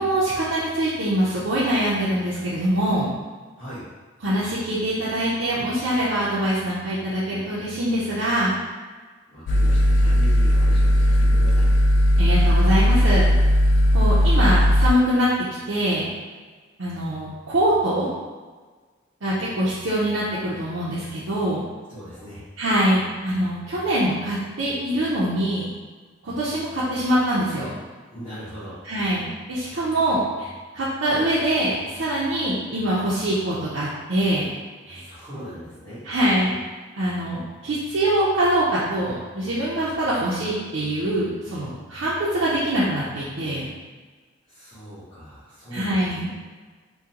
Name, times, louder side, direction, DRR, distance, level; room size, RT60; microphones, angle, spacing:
voice 1, 0.0-3.1 4.2-8.5 12.2-13.3 13.9-15.3 15.7-16.1 16.8-18.1 19.2-21.6 22.6-25.7 26.2-27.7 28.9-34.5 34.9-35.0 36.1-36.6 37.0-43.7 45.7-46.3, right 1 dB, 85° right, -9 dB, 0.6 m, -24 dB
voice 2, 9.3-11.7 21.9-22.4 28.1-28.8 34.9-36.0 44.5-46.1, equal, 15° left, -17 dB, 1.2 m, -39 dB
sound 1, 9.5-14.9, equal, 70° left, 0.3 m, -17 dB
3.7 x 2.2 x 2.8 m, 1.4 s
head